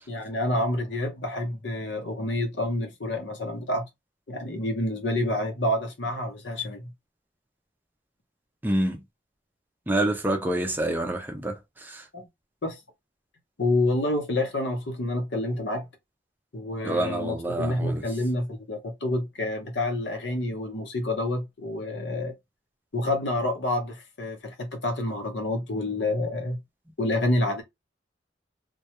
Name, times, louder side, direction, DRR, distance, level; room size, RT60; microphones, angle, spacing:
voice 1, 0.1-3.8 4.3-6.9 12.1-12.3 12.6-12.8 13.6-15.9 16.5-22.3 22.9-26.6 27.0-27.6, left 1 dB, 80° left, 0.8 m, -28 dB
voice 2, 8.6-9.0 9.9-11.5 11.9-12.0 16.8-18.0, right 1 dB, 10° right, 0.5 m, -27 dB
2.2 x 2.2 x 2.9 m
head